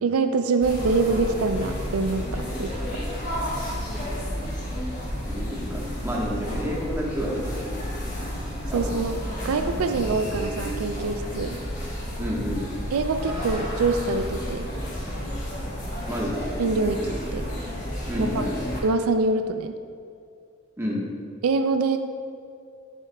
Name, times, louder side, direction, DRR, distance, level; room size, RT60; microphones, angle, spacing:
voice 1, 0.0-2.7 8.7-11.6 12.9-14.7 16.6-17.5 18.2-18.4 18.8-19.7 21.4-22.0, right 3 dB, 80° right, 8 dB, 0.4 m, -25 dB
sound 1, 0.6-18.8, equal, 35° left, 1.5 m, -31 dB
voice 2, 5.2-7.9 8.7-8.9 12.2-12.6 16.0-16.4 18.1-18.5 20.8-21.1, equal, 10° right, -4 dB, 1.2 m, -30 dB
10.0 x 8.3 x 2.3 m, 2.4 s
head